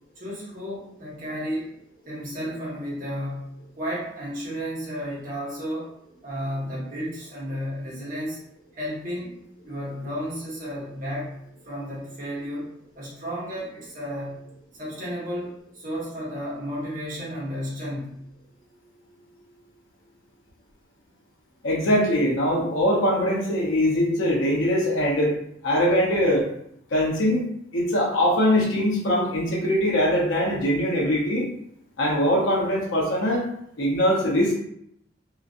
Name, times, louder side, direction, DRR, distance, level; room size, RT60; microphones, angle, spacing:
voice 1, 0.2-1.7 2.1-5.9 6.2-8.4 8.7-9.4 9.6-11.3 11.6-12.7 12.9-14.4 14.8-18.2, equal, 45° right, -6 dB, 1.1 m, -32 dB
voice 2, 21.6-25.3 25.6-26.4 26.9-27.4 27.7-31.4 32.0-33.5 33.8-34.6, equal, 80° left, -3 dB, 0.7 m, -22 dB
2.9 x 2.5 x 2.4 m, 0.73 s
head